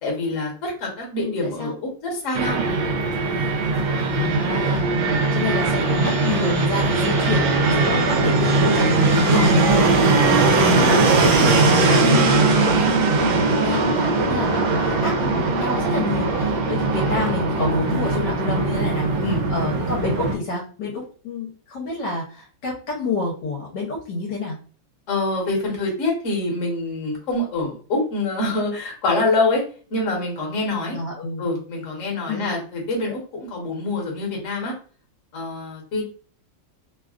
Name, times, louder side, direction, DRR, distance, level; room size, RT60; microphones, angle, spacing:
voice 1, 0.0-2.6 3.5-4.2 9.1-9.9 19.2-19.4 25.1-29.6 29.9-31.0 31.4-34.7 35.3-36.0, left 2 dB, 45° left, -1 dB, 1.2 m, -25 dB
voice 2, 1.2-1.7 4.1-9.1 9.4-10.0 10.3-19.2 19.5-24.6 30.9-31.4 32.3-32.5, left 3 dB, 70° left, -2 dB, 1.3 m, -28 dB
Fixed-wing aircraft airplane, 2.3-20.4, right 3 dB, 80° right, 1.2 m, -20 dB
3.2 x 2.3 x 2.3 m, 0.40 s
omnidirectional pair, 2.0 m